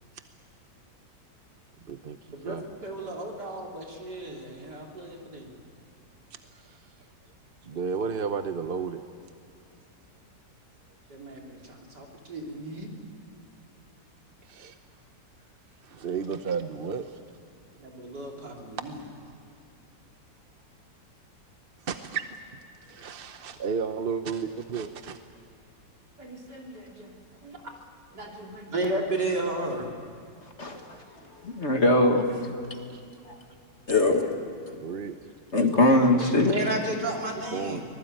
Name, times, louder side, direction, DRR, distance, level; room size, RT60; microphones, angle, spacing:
voice 1, 1.8-2.2 2.4-2.6 6.5-6.8 7.6-9.0 14.5-14.7 15.8-17.2 18.8-19.3 21.8-22.3 22.8-25.2 32.9-33.0 34.7-35.1 37.4-37.8, right 6 dB, 45° right, 8 dB, 0.8 m, -33 dB
voice 2, 2.3-5.5 11.1-12.9 17.8-18.9 26.2-27.1 27.4-27.6 28.1-29.8 36.2-37.8, right 2 dB, 65° right, 0 dB, 3.8 m, -34 dB
voice 3, 30.6-31.0 31.4-32.3 33.3-33.4 33.9-34.3 35.5-36.5, left 2 dB, 40° left, 4 dB, 2.0 m, -21 dB
24.5 x 20.0 x 9.0 m, 2.5 s
omnidirectional pair, 1.9 m